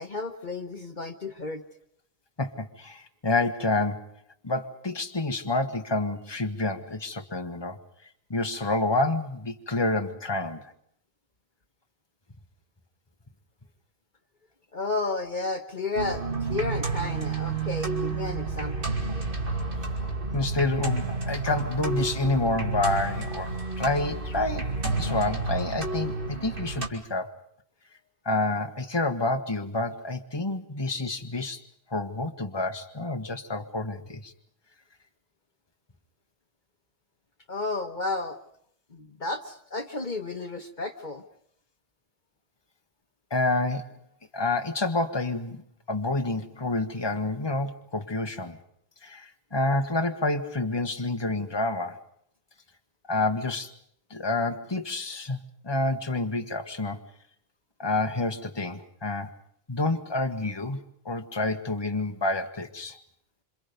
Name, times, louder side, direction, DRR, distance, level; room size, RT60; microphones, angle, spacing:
voice 1, 0.0-1.6 14.7-19.0 37.5-38.4 38.9-41.2, left 3 dB, 50° left, 5 dB, 1.4 m, -32 dB
voice 2, 2.4-4.1 4.4-7.8 8.3-10.6 20.3-27.3 28.2-31.6 31.9-34.3 43.3-44.0 44.3-45.6 45.9-48.6 49.0-52.0 53.1-53.7 54.1-57.0 57.8-59.3 59.7-60.8 61.0-63.0, left 2 dB, 25° left, 5 dB, 1.5 m, -28 dB
sound 1, 16.0-26.9, right 3 dB, 60° right, 2.7 m, -30 dB
27.0 x 27.0 x 5.3 m, 0.69 s
omnidirectional pair, 1.0 m